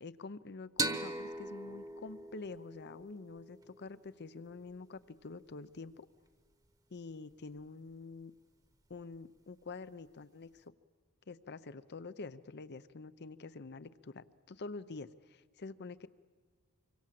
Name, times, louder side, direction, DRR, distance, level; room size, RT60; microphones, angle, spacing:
voice 1, 0.0-6.1 6.9-8.3 8.9-10.7 11.3-16.1, left 3 dB, 50° left, 15 dB, 0.7 m, -47 dB
sound 1, 0.8-4.2, right 2 dB, 15° right, 1.1 m, -40 dB
25.0 x 25.0 x 7.6 m, 1.5 s
head